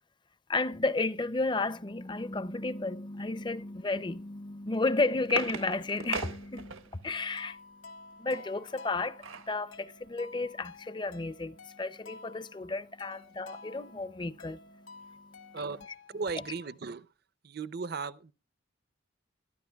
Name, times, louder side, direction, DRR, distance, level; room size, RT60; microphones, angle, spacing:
voice 1, 0.5-7.6 8.2-15.6, left 3 dB, 20° left, 0.5 m, -33 dB
sound 1, 4.7-7.1 8.7-9.6 10.1-10.2 10.4-10.7, right 5 dB, 85° right, 1.3 m, -39 dB
sound 2, 7.4-16.8, left 3 dB, 80° left, 1.8 m, -52 dB
voice 2, 15.5-17.1 17.4-18.3, right 4 dB, 50° right, 0.5 m, -37 dB
21.5 x 13.0 x 2.3 m
head